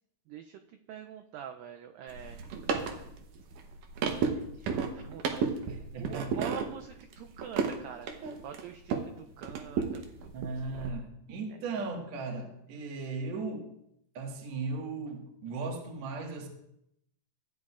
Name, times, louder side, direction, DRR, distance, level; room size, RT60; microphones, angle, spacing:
voice 1, 0.3-0.6 0.9-2.5 4.2-5.6 6.0-8.1 8.4-10.0, right 8 dB, 90° right, 6 dB, 2.0 m, -45 dB
sound 1, 2.1-9.1 9.4-10.9, right 6 dB, 70° right, 2.1 m, -33 dB
voice 2, 5.7-6.4 10.3-13.7 14.1-16.5, right 3 dB, 55° right, 1 dB, 2.3 m, -37 dB
15.5 x 10.5 x 2.4 m, 0.78 s
omnidirectional pair, 4.6 m